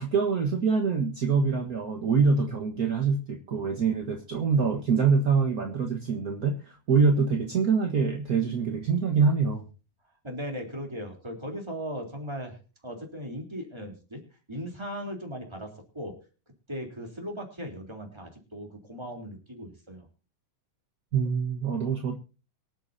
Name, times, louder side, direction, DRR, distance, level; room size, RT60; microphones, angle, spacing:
voice 1, 0.0-9.6 21.1-22.2, right 5 dB, 45° right, 2 dB, 1.2 m, -25 dB
voice 2, 10.2-12.6 12.8-16.2 16.7-20.1, equal, 10° right, 2 dB, 3.2 m, -38 dB
24.0 x 8.8 x 2.8 m, 0.34 s
omnidirectional pair, 3.6 m